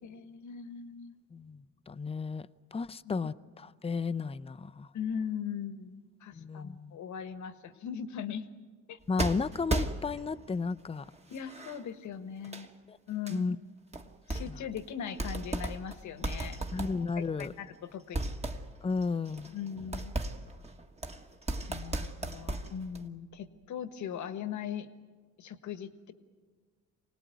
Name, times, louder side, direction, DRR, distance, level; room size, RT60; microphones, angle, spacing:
voice 1, 0.0-1.2 3.0-3.1 4.9-8.5 8.9-9.0 11.3-12.7 13.1-13.5 14.3-16.6 17.2-18.3 19.5-20.1 21.7-24.9 25.4-26.1, left 8 dB, 75° left, 11 dB, 1.5 m, -39 dB
voice 2, 1.3-4.9 6.3-7.0 9.1-11.1 12.9-13.0 13.3-13.6 14.3-14.6 16.7-17.5 18.8-19.6, left 4 dB, 20° left, 12 dB, 0.6 m, -34 dB
sound 1, 9.2-10.4 11.1-11.8 12.4-12.7 13.3-13.4 13.9-14.8 15.1-17.8 18.1-23.1, right 2 dB, 20° right, 1.6 m, -36 dB
25.0 x 18.5 x 9.4 m, 1.5 s
cardioid pair, 90°, 30 cm